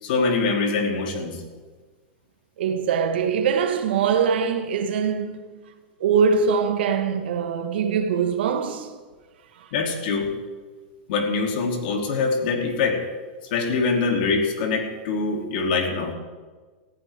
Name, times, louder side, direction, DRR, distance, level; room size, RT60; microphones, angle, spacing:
voice 1, 0.0-1.4 9.7-10.3 11.1-13.0 13.5-16.1, left 4 dB, 60° left, 2.9 m, -24 dB
voice 2, 2.6-5.4 6.0-8.9 9.6-9.7, right 6 dB, 75° right, 1.6 m, -22 dB
18.0 x 15.0 x 3.6 m
supercardioid pair, 145°, 6 cm